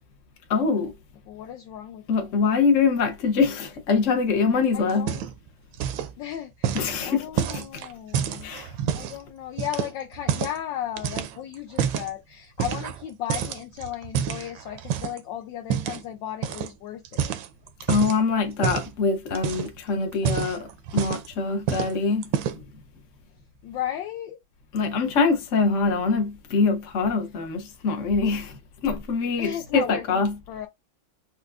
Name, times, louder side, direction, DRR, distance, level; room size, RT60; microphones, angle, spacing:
voice 1, 0.5-0.9 2.1-5.1 6.7-7.2 7.5-7.6 8.4-8.7 17.9-22.6 24.7-30.4, left 4 dB, 50° left, 1.0 m, -24 dB
voice 2, 1.3-2.4 4.7-5.2 6.2-8.6 8.9-17.3 23.6-24.4 29.4-30.7, left 11 dB, 75° left, 1.3 m, -35 dB
sound 1, 4.9-5.5 5.7-6.1 6.6-9.2 9.6-10.6 11.0-12.1 12.6-13.0 13.3-15.2 15.7-16.0 16.4-16.7 17.0-18.2 18.6-18.9 19.3-19.8 20.1-21.3 21.7-21.9 22.2-22.7, right 9 dB, 80° right, 1.3 m, -28 dB
4.6 x 2.2 x 2.4 m
omnidirectional pair, 2.2 m